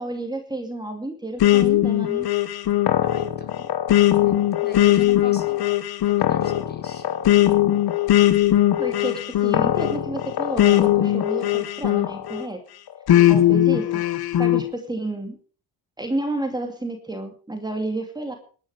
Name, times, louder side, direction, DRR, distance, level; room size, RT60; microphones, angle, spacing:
voice 1, 0.0-2.3 8.8-12.6 13.3-14.0 14.4-15.3 16.0-18.3, right 1 dB, 10° right, 3 dB, 2.5 m, -30 dB
sound 1, 1.4-12.5 13.1-14.6, left 13 dB, 75° left, 1.4 m, -19 dB
voice 2, 3.0-3.7 4.2-5.6 6.3-7.1, left 4 dB, 25° left, 5 dB, 3.9 m, -40 dB
19.5 x 11.0 x 5.0 m, 0.41 s
cardioid pair, 95°, 38 cm